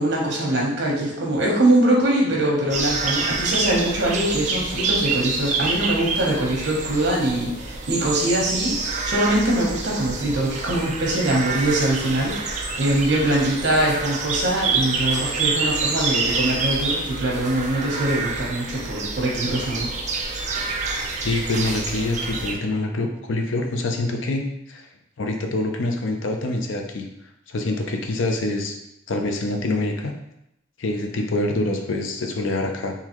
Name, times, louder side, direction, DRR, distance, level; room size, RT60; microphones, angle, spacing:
voice 1, 0.0-19.9, right 1 dB, 60° right, -3 dB, 1.1 m, -22 dB
sound 1, 2.7-22.5, right 4 dB, 40° right, 0.5 m, -27 dB
voice 2, 21.2-24.9 25.2-27.1 27.5-28.7 29.1-30.1 30.8-32.9, left 2 dB, 90° left, 3 dB, 0.6 m, -25 dB
3.8 x 2.8 x 3.0 m, 0.81 s
head